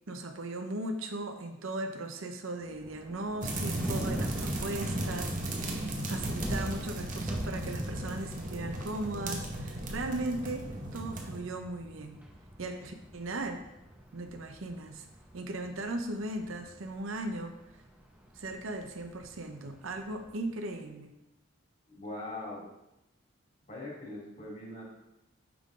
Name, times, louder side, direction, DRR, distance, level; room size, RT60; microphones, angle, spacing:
voice 1, 0.1-10.7 10.9-12.2 12.6-13.6 14.1-15.1 15.3-17.5 18.3-21.1, right 2 dB, 85° right, 6 dB, 0.8 m, -37 dB
Thunder, 2.6-20.6, equal, 5° right, 0.8 m, -42 dB
sound 1, 3.4-11.4, right 1 dB, 40° right, 0.9 m, -36 dB
voice 2, 21.9-22.7 23.7-24.8, left 2 dB, 40° left, -5 dB, 2.6 m, -41 dB
9.3 x 3.8 x 3.7 m, 0.91 s
head